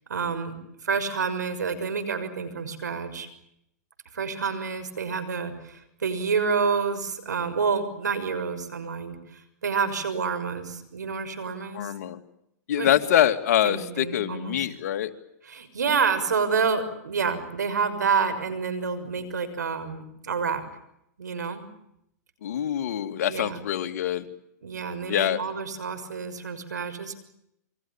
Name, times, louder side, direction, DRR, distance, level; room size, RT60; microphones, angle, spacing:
voice 1, 0.1-0.6 0.8-3.3 4.1-11.9 12.7-12.9 13.6-14.6 15.5-20.6 21.2-21.6 23.3-23.6 24.6-27.1, right 5 dB, 90° right, 10 dB, 6.2 m, -28 dB
voice 2, 11.7-12.2 12.7-15.1 22.4-24.2 25.1-25.4, left 10 dB, 65° left, 8 dB, 2.5 m, -25 dB
28.5 x 24.5 x 7.3 m, 0.78 s
hypercardioid pair, 120°, 9 cm